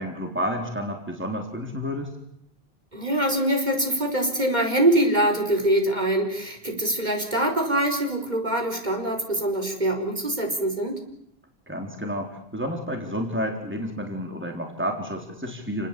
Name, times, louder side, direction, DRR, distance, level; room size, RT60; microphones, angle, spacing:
voice 1, 0.0-2.1 11.7-15.9, equal, 10° right, 2 dB, 3.9 m, -30 dB
voice 2, 2.9-11.0, right 1 dB, 40° right, 3 dB, 5.3 m, -24 dB
30.0 x 20.0 x 8.5 m, 0.74 s
omnidirectional pair, 1.1 m